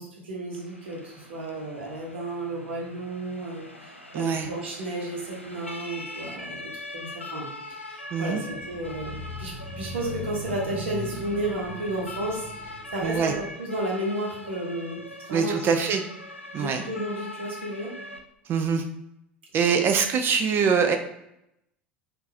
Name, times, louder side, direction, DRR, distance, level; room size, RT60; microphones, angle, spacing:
voice 1, 0.0-15.6 16.6-17.9 19.6-19.8, right 1 dB, 70° right, -2 dB, 1.0 m, -33 dB
Siren, 0.5-18.2, left 1 dB, 90° left, 0.4 m, -42 dB
voice 2, 4.1-4.5 8.1-8.4 13.0-13.3 15.3-16.0 16.5-16.8 18.5-18.8 19.5-21.0, right 6 dB, 35° right, 6 dB, 0.4 m, -23 dB
sound 1, 8.5-13.5, equal, 15° left, 1.3 m, -39 dB
3.7 x 2.4 x 2.8 m, 0.82 s
figure-of-eight pair, 75°, 6 cm